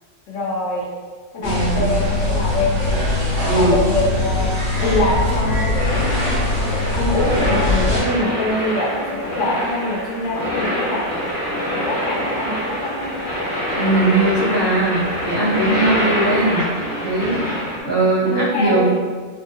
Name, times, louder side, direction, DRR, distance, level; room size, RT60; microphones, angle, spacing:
voice 1, 0.3-0.9 1.3-3.1 3.5-4.5 4.8-6.2 6.5-11.1 11.7-13.2 18.2-18.9, left 1 dB, 85° left, -3 dB, 1.1 m, -24 dB
voice 2, 1.4-1.9 3.4-3.7 13.7-16.6 17.0-18.9, right 2 dB, 20° left, -11 dB, 1.1 m, -20 dB
sound 1, 1.4-8.0, left 2 dB, 25° right, 1.1 m, -21 dB
sound 2, 5.7-17.8, equal, 65° left, 1.1 m, -25 dB
3.3 x 2.4 x 2.8 m, 1.5 s
omnidirectional pair, 1.3 m